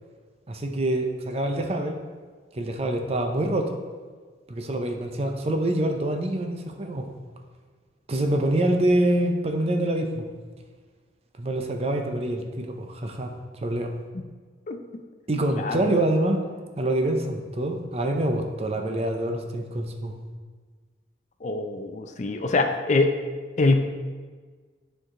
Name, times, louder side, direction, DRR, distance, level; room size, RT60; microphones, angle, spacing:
voice 1, 0.5-2.0 2.5-3.8 4.5-7.1 8.1-10.3 11.4-13.3 13.6-13.9 15.3-16.4 16.8-20.1, right 1 dB, 35° right, 4 dB, 0.6 m, -25 dB
voice 2, 15.5-15.9 21.4-23.1 23.6-24.0, left 2 dB, 40° left, 6 dB, 0.5 m, -24 dB
9.2 x 4.6 x 3.7 m, 1.5 s
head